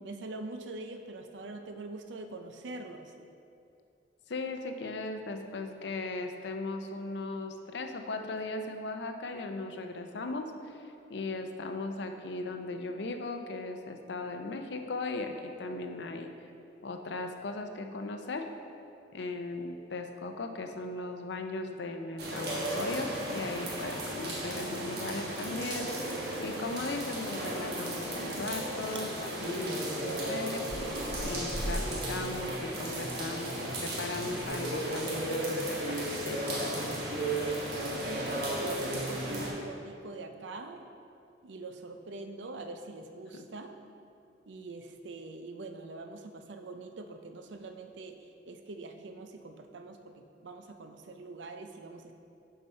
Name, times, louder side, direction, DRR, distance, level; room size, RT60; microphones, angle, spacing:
voice 1, 0.0-3.1 38.1-40.9 41.4-43.8 44.5-52.1, right 3 dB, 75° right, 6 dB, 0.5 m, -44 dB
voice 2, 4.3-16.3 16.8-18.5 19.1-25.9 26.4-30.6 31.2-36.9 43.3-43.4, left 2 dB, 65° left, 6 dB, 0.5 m, -38 dB
sound 1, 22.2-39.5, right 1 dB, 60° right, 1.3 m, -34 dB
Chewing mastication, 28.1-28.5 28.8-29.1 29.5-33.3 33.6-39.0, equal, 25° right, 0.5 m, -43 dB
6.7 x 5.8 x 4.3 m, 2.6 s
head